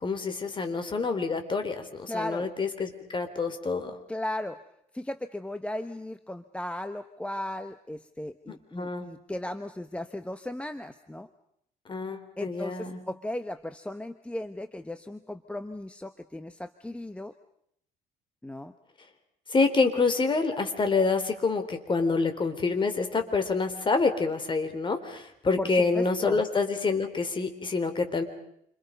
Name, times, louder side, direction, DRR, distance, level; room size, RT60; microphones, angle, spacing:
voice 1, 0.0-3.9 8.5-9.1 11.9-13.0 19.5-28.2, left 4 dB, 30° left, 7 dB, 3.9 m, -27 dB
voice 2, 2.1-2.5 4.1-4.6 4.9-11.3 12.4-17.3 18.4-18.7 25.6-26.4, left 1 dB, 5° left, 10 dB, 1.1 m, -36 dB
29.0 x 27.0 x 5.3 m, 0.72 s
cardioid pair, 110°, 17 cm